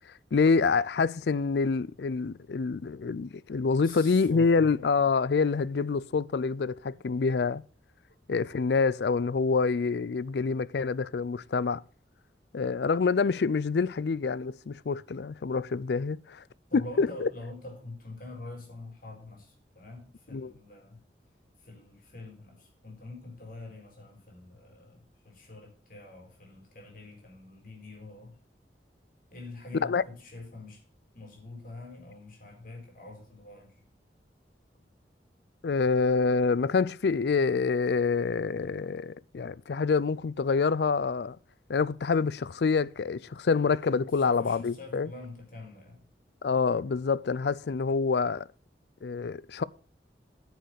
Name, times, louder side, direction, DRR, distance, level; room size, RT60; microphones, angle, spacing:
voice 1, 0.3-7.6 8.3-11.8 12.5-16.4 16.7-17.3 20.3-20.5 29.8-30.0 35.6-41.4 41.7-45.1 46.4-48.5 49.0-49.6, left 4 dB, 70° left, 0.4 m, -26 dB
voice 2, 3.8-4.7 16.7-21.0 21.6-28.4 29.3-30.8 31.1-33.7 43.9-46.0, left 2 dB, 50° left, 4.2 m, -45 dB
9.3 x 6.6 x 6.5 m
head